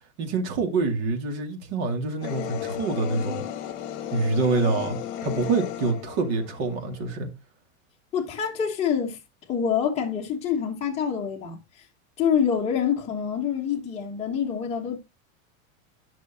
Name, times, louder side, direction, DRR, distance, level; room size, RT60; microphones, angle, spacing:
voice 1, 0.2-3.4 4.1-7.3, right 3 dB, 50° right, 2.5 m, -26 dB
sound 1, 2.2-7.2, left 10 dB, 40° left, 1.5 m, -34 dB
voice 2, 8.1-9.2 9.5-11.6 12.2-15.0, left 7 dB, 15° left, 1.2 m, -26 dB
11.5 x 6.1 x 2.8 m
supercardioid pair, 175°, 40 cm